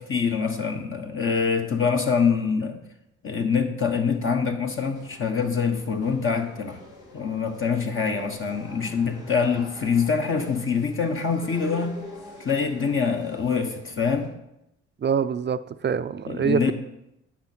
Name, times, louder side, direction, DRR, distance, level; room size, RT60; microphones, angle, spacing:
voice 1, 0.0-2.8 3.2-6.8 7.1-11.9 12.4-14.3 16.2-16.7, left 5 dB, 40° left, 3 dB, 1.3 m, -25 dB
sound 1, 4.8-14.3, left 2 dB, 75° left, 2.3 m, -46 dB
voice 2, 15.0-16.7, right 7 dB, 35° right, 13 dB, 0.5 m, -25 dB
10.0 x 6.2 x 4.4 m, 0.86 s
supercardioid pair, 55°, 30 cm